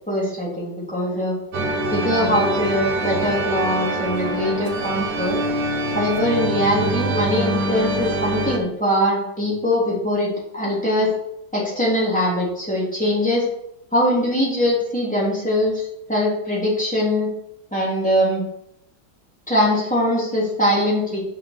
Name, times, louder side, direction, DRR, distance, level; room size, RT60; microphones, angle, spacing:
voice 1, 0.1-1.3 1.9-5.4 5.9-11.1 11.5-13.4 13.9-17.3 17.7-18.4 19.5-21.2, left 1 dB, 5° left, -6 dB, 3.2 m, -22 dB
sound 1, 1.5-8.6, right 1 dB, 60° right, 1.7 m, -24 dB
6.5 x 5.6 x 7.0 m, 0.79 s
omnidirectional pair, 2.1 m